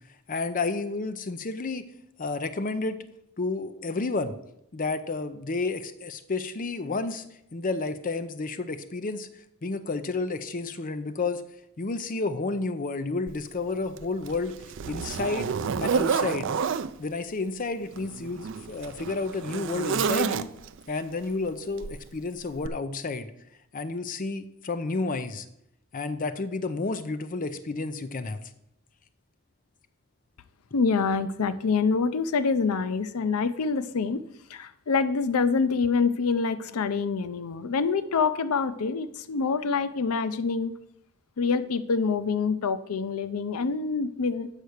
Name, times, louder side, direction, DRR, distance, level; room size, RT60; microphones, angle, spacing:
voice 1, 0.3-1.8 2.2-3.0 3.4-4.3 4.7-7.2 7.5-9.3 9.6-11.4 11.8-14.6 14.9-15.5 15.8-16.5 17.0-20.5 20.9-23.3 23.7-25.5 25.9-28.4, left 3 dB, 40° left, 10 dB, 0.5 m, -31 dB
Zipper (clothing), 13.3-13.4 14.0-16.9 17.9-20.8 21.8-22.0 22.6-22.7, right 6 dB, 60° right, 0.4 m, -29 dB
voice 2, 30.7-34.2 34.5-40.7 41.4-44.5, left 5 dB, 90° left, 14 dB, 0.5 m, -26 dB
8.2 x 5.7 x 6.4 m, 0.78 s
head